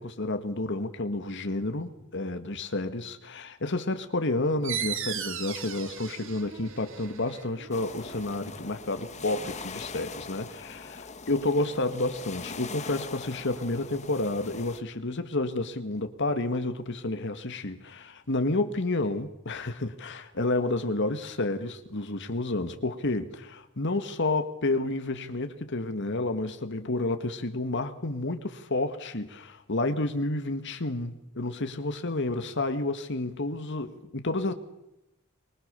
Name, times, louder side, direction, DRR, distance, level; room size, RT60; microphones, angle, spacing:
voice 1, 0.0-34.5, left 2 dB, 60° left, 1.7 m, -30 dB
sound 1, 4.6-9.9, right 8 dB, 65° right, 2.4 m, -38 dB
sound 2, 7.7-14.8, left 4 dB, 35° left, 1.7 m, -42 dB
23.5 x 22.5 x 6.9 m
head